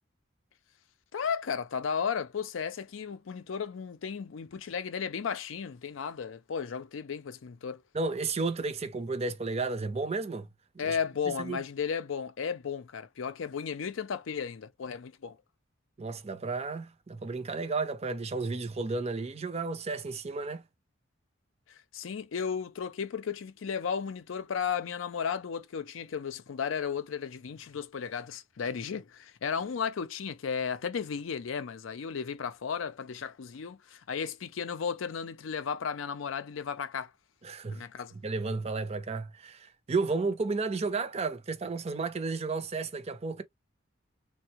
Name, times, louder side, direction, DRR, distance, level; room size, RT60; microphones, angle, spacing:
voice 1, 1.1-7.8 10.8-15.4 21.9-37.1 37.7-38.1, left 6 dB, 75° left, 0.5 m, -34 dB
voice 2, 7.9-10.5 10.8-11.0 11.4-11.6 16.0-20.6 37.4-37.8 38.1-43.4, right 3 dB, 35° right, 0.5 m, -32 dB
3.5 x 2.1 x 2.7 m
head